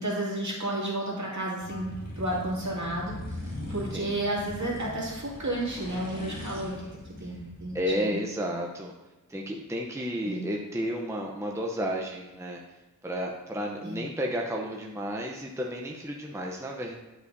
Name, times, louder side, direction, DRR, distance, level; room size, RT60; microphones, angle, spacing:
voice 1, 0.0-3.2 3.7-6.8 7.2-8.2 10.2-10.5 13.8-14.0, right 1 dB, 55° right, -5 dB, 2.4 m, -32 dB
sound 1, 1.6-7.9, left 1 dB, 50° left, 2.4 m, -40 dB
voice 2, 3.5-4.2 6.5-6.9 7.2-7.4 7.7-8.9 9.3-12.6 13.0-16.9, equal, 10° right, 0 dB, 0.7 m, -32 dB
10.0 x 5.5 x 2.7 m, 1.2 s
wide cardioid pair, 80°, 34 cm